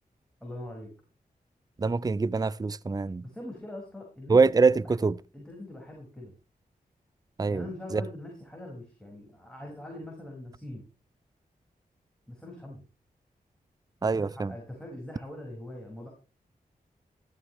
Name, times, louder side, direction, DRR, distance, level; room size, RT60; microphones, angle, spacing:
voice 1, 0.4-0.9 3.2-5.0 5.3-6.3 7.5-10.8 12.3-12.8 14.0-16.1, left 1 dB, 5° left, 5.6 m, -42 dB
voice 2, 1.8-3.2 4.3-5.2 7.4-7.6 7.9-8.0 14.0-14.5, right 4 dB, 25° right, 0.5 m, -24 dB
14.5 x 13.0 x 3.2 m
cardioid pair, 55°, 16 cm